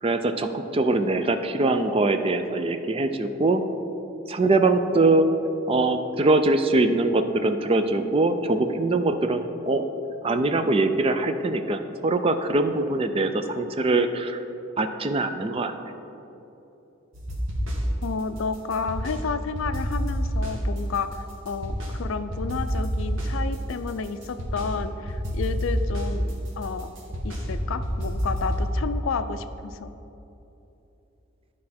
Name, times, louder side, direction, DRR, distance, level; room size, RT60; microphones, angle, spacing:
voice 1, 0.0-3.6 4.3-5.3 5.7-9.8 10.2-14.4 14.8-15.7, right 2 dB, 25° right, 8 dB, 0.4 m, -23 dB
sound 1, 17.1-18.0 18.4-19.2 19.5-22.0 22.3-24.7 25.1-28.7, equal, 70° right, 1.5 m, -28 dB
voice 2, 18.0-26.9 27.2-29.9, left 4 dB, 70° left, 11 dB, 0.4 m, -31 dB
11.5 x 4.8 x 4.2 m, 3.0 s
head